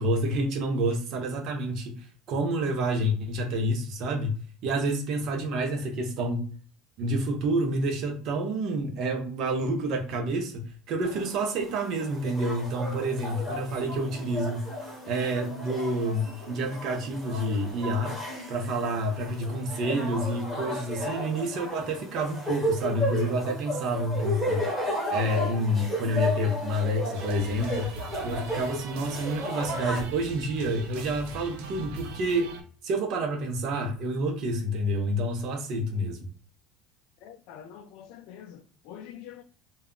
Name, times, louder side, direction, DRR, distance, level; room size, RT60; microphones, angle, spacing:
voice 1, 0.0-1.9 2.3-4.4 4.6-6.5 7.0-14.7 15.1-18.1 18.5-24.6 25.1-27.9 28.2-32.5 32.8-36.2, right 1 dB, 45° right, 0.6 m, -28 dB
sound 1, 11.0-30.0, equal, 5° right, 0.8 m, -34 dB
sound 2, 27.1-32.6, right 3 dB, 90° right, 0.6 m, -41 dB
voice 2, 37.2-39.4, left 9 dB, 60° left, 0.4 m, -45 dB
2.2 x 2.0 x 3.6 m
cardioid pair, 170°, 0 cm